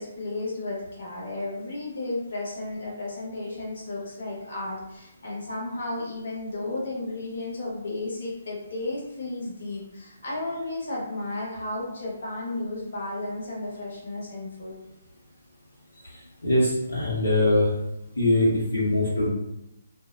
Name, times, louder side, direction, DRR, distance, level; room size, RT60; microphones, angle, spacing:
voice 1, 0.0-14.8, left 2 dB, 65° left, -4 dB, 1.0 m, -33 dB
voice 2, 15.9-17.7 18.2-19.3, left 1 dB, 85° left, -7 dB, 0.8 m, -23 dB
2.4 x 2.1 x 2.5 m, 0.86 s
figure-of-eight pair, 140°, 0 cm